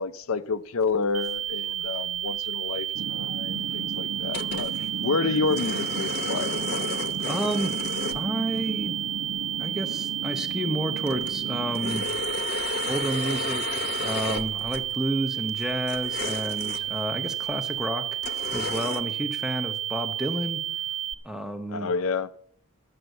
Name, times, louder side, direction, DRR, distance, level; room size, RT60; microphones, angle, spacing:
voice 1, 0.0-4.7 5.0-6.7 21.7-22.3, left 4 dB, 80° left, 0.6 m, -29 dB
sound 1, 1.1-21.1, right 11 dB, 35° right, 0.7 m, -31 dB
sound 2, 1.2-1.3 1.8-2.0 2.3-2.4 2.5-2.6 3.2-3.3 4.2-4.9 5.3-8.2 8.6-8.7 10.0-10.1 10.5-10.6 10.9-15.0 15.5-17.0 17.5-17.6 18.2-19.0, left 4 dB, 45° left, 0.9 m, -34 dB
sound 3, 2.9-12.0, right 3 dB, 85° right, 0.6 m, -36 dB
voice 2, 7.2-7.8 8.1-9.0 9.6-12.1 12.9-18.2 18.5-20.6 21.2-21.9, right 1 dB, 5° right, 0.9 m, -31 dB
12.5 x 7.8 x 8.0 m
head